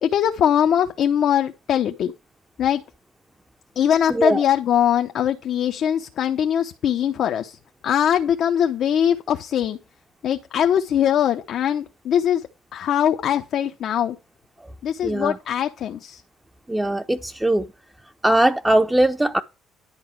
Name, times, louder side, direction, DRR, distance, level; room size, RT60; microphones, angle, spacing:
voice 1, 0.0-2.1 2.6-2.8 3.8-9.8 10.2-14.2 14.8-16.2, left 9 dB, 65° left, 0.9 m, -21 dB
voice 2, 15.0-15.4 16.7-17.7 18.2-19.4, right 1 dB, 10° right, 0.7 m, -20 dB
11.0 x 4.3 x 7.5 m
cardioid pair, 85°, 0 cm